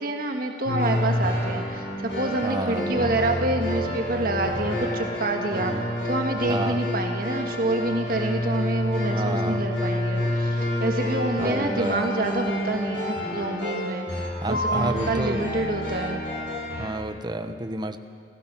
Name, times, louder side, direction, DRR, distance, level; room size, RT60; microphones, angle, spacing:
voice 1, 0.0-16.2, right 2 dB, 55° right, 3 dB, 1.5 m, -28 dB
sound 1, 0.7-16.9, left 1 dB, 70° left, 7.9 m, -28 dB
voice 2, 2.4-2.9 5.5-5.9 6.5-6.8 9.1-9.7 11.4-12.1 14.4-15.5 16.8-18.0, right 2 dB, 25° right, 8 dB, 1.0 m, -30 dB
28.5 x 15.5 x 6.1 m, 2.2 s
head